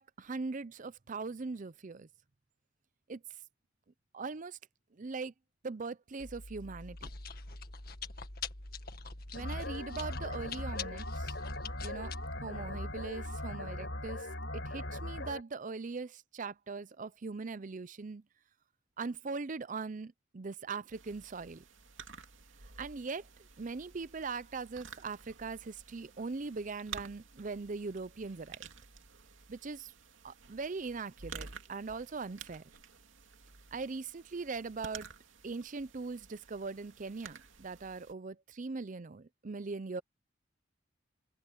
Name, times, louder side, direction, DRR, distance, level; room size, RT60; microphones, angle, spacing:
voice 1, 0.0-2.1 3.1-3.2 4.1-4.6 5.0-5.3 5.6-7.1 9.3-11.3 11.8-12.1 12.4-14.2 14.5-18.2 19.0-21.6 22.8-23.2 23.6-28.6 29.5-29.9 30.2-32.6 33.7-35.1 35.4-40.0, right 4 dB, 40° right, 0.6 m, -40 dB
Chewing mastication, 6.2-13.4, left 4 dB, 50° left, 1.8 m, -45 dB
sound 1, 9.3-15.4, left 1 dB, 70° left, 4.1 m, -39 dB
sound 2, 20.9-38.1, right 6 dB, 85° right, 2.6 m, -52 dB
head